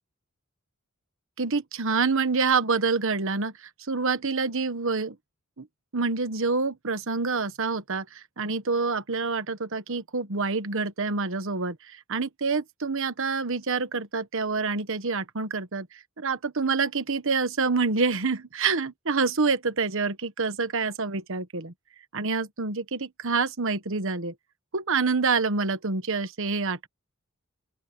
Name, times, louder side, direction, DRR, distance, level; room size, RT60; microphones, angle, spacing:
voice 1, 1.4-5.2 5.6-5.7 5.9-21.7 22.1-24.3 24.7-26.9, right 4 dB, 65° right, 1.2 m, -27 dB
open air
head